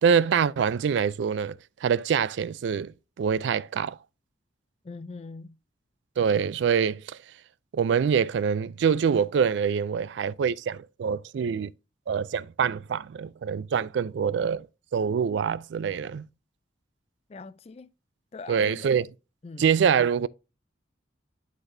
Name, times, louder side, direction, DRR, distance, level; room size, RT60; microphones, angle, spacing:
voice 1, 0.0-1.6 1.8-4.0 6.2-7.2 7.7-11.7 12.1-14.7 14.9-16.3 18.5-19.1 19.6-20.3, right 7 dB, 75° right, 0.3 m, -25 dB
voice 2, 4.8-5.5 17.3-17.9 18.3-18.9 19.4-19.7, left 3 dB, 35° left, 0.3 m, -41 dB
10.5 x 4.1 x 2.6 m
head